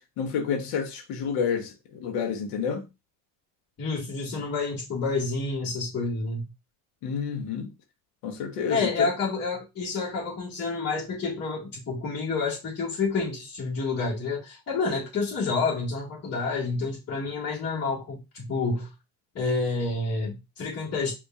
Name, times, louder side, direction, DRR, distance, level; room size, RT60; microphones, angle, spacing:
voice 1, 0.2-2.8 7.0-7.7 8.2-9.1, left 6 dB, 75° left, 1.3 m, -29 dB
voice 2, 3.8-6.5 8.7-18.9 19.4-21.1, left 4 dB, 35° left, 1.8 m, -29 dB
5.3 x 2.9 x 2.4 m
supercardioid pair, 85°, 41 cm